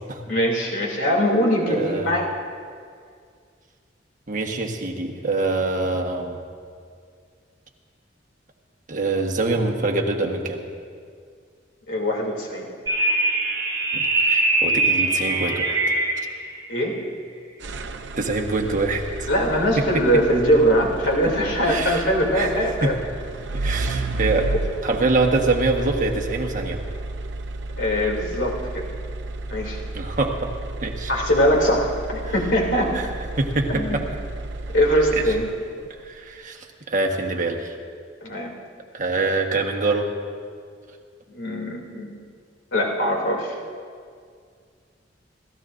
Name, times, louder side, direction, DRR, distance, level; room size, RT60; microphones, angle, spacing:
voice 1, 0.3-2.3 11.9-12.7 16.7-17.0 19.3-22.9 27.8-28.8 29.5-29.8 31.1-32.9 33.7-34.0 34.7-35.5 38.2-38.5 41.3-42.1 42.7-43.6, equal, 80° left, -1 dB, 2.8 m, -21 dB
voice 2, 1.7-2.1 4.3-6.4 8.9-10.6 13.9-15.8 18.2-19.3 19.8-20.0 21.7-22.1 22.3-23.0 23.5-24.5 24.8-26.8 29.9-30.5 30.8-31.1 32.9-33.1 33.4-34.1 36.0-37.8 38.9-40.1, right 3 dB, 45° right, 2 dB, 1.3 m, -25 dB
sound 1, 12.9-16.3, right 2 dB, 25° right, 3.1 m, -22 dB
sound 2, 17.6-35.9, right 2 dB, 70° right, 0.6 m, -32 dB
28.5 x 14.5 x 2.6 m, 2.1 s
head